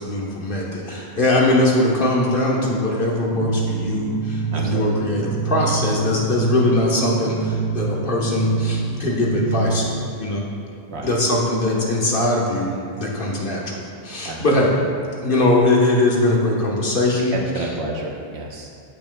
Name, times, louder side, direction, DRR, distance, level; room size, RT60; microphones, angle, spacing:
voice 1, 0.0-10.4 11.0-14.7 15.2-17.7, left 1 dB, 55° left, -3 dB, 1.4 m, -21 dB
sound 1, 3.3-10.0, right 5 dB, ahead, 1.8 m, -26 dB
voice 2, 4.5-4.8 10.9-11.1 14.2-14.4 17.3-18.7, right 2 dB, 85° right, -1 dB, 1.3 m, -30 dB
14.0 x 5.9 x 2.3 m, 2.3 s
omnidirectional pair, 1.1 m